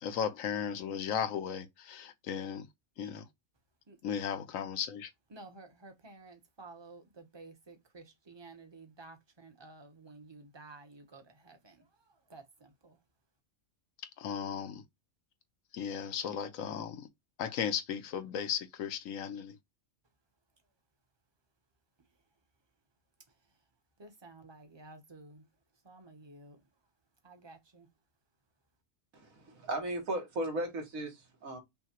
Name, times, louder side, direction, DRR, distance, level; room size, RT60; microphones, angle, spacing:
voice 1, 0.0-2.7 3.0-3.2 4.0-5.1 14.2-14.8 15.7-17.1 17.4-19.6, left 8 dB, 75° left, 1.1 m, -36 dB
voice 2, 5.3-11.8 12.3-13.0 24.0-25.4 25.8-26.6 27.2-27.9, right 3 dB, 25° right, 0.8 m, -53 dB
voice 3, 29.1-31.6, right 1 dB, 85° right, 1.9 m, -36 dB
5.7 x 2.2 x 2.9 m
omnidirectional pair, 1.4 m